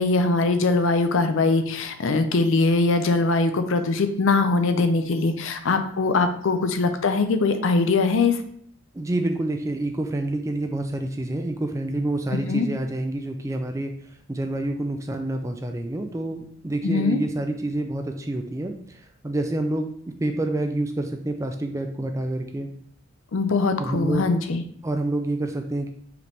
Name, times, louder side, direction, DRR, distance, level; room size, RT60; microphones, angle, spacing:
voice 1, 0.0-8.4 12.5-12.7 16.8-17.2 23.3-24.6, left 3 dB, 65° left, 8 dB, 0.5 m, -22 dB
voice 2, 8.9-13.9 14.3-22.7 23.8-24.3 24.8-25.9, right 1 dB, 15° right, 6 dB, 0.3 m, -28 dB
4.8 x 3.5 x 3.1 m, 0.64 s
head